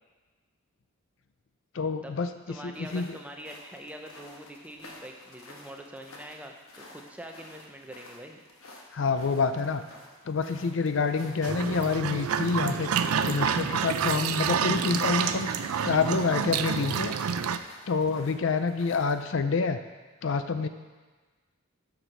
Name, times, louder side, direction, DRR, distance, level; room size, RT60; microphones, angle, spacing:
voice 1, 1.7-2.3 2.6-3.2 8.9-9.8 10.3-15.5 15.8-17.1 17.9-19.8 20.2-20.7, left 4 dB, 60° left, 9 dB, 0.4 m, -27 dB
voice 2, 2.5-8.4, right 1 dB, 5° right, 2 dB, 0.7 m, -44 dB
sound 1, 2.7-19.2, left 2 dB, 80° left, 1.2 m, -52 dB
sound 2, 11.4-17.6, right 7 dB, 90° right, 0.4 m, -28 dB
8.1 x 5.9 x 6.1 m, 1.3 s
head